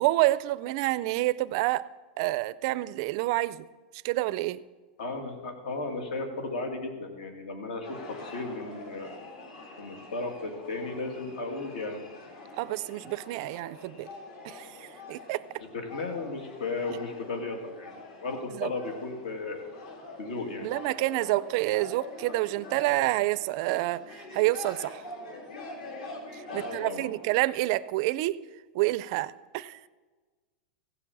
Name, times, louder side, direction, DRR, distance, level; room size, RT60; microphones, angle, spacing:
voice 1, 0.0-1.9 2.2-3.7 4.0-4.6 12.6-14.1 14.4-15.4 18.5-18.7 20.6-25.0 26.3-28.4 28.7-29.8, right 18 dB, 40° right, 16 dB, 0.4 m, -28 dB
voice 2, 5.0-9.2 9.7-12.1 15.6-19.7 20.2-20.7 26.5-27.1, left 3 dB, 75° left, 4 dB, 2.5 m, -35 dB
sound 1, 7.8-27.4, left 2 dB, 60° left, 2.8 m, -45 dB
15.5 x 6.9 x 7.3 m, 1.3 s
supercardioid pair, 175°, 5 cm